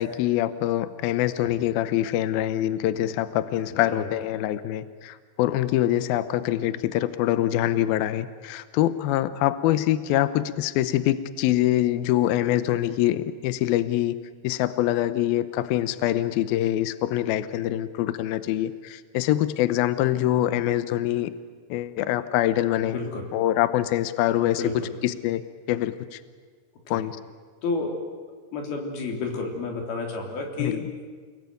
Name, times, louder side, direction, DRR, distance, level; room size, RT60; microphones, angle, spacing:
voice 1, 0.0-14.2 14.4-21.3 21.7-23.0 23.3-25.4 25.7-26.2 26.9-27.2 30.6-30.8, left 13 dB, 80° left, 13 dB, 2.1 m, -24 dB
voice 2, 3.7-4.1 22.8-23.3 24.4-24.9 26.9-27.0 27.6-28.1 28.5-30.8, left 3 dB, 55° left, 2 dB, 5.1 m, -31 dB
29.0 x 21.0 x 9.3 m, 1.5 s
omnidirectional pair, 5.4 m